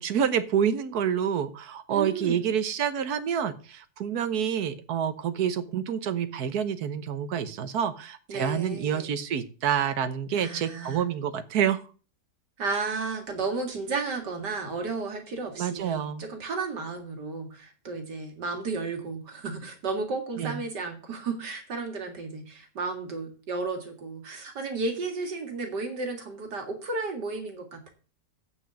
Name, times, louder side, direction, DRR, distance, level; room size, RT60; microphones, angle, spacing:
voice 1, 0.0-11.8 15.6-16.3 20.4-20.6, right 8 dB, 70° right, 11 dB, 1.5 m, -28 dB
voice 2, 1.9-2.5 8.3-9.1 10.3-11.0 12.6-27.9, right 3 dB, 90° right, 5 dB, 2.7 m, -33 dB
8.6 x 6.4 x 7.6 m, 0.37 s
omnidirectional pair, 1.8 m